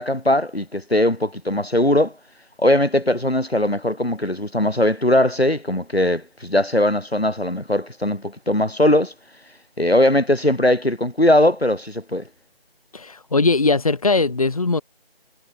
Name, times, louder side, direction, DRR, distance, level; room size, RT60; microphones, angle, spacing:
voice 1, 0.0-2.1 2.6-9.1 9.8-12.2, left 1 dB, 80° left, 6.5 m, -19 dB
voice 2, 12.9-14.8, left 3 dB, 35° left, 1.9 m, -20 dB
figure-of-eight pair, 160°, 30 cm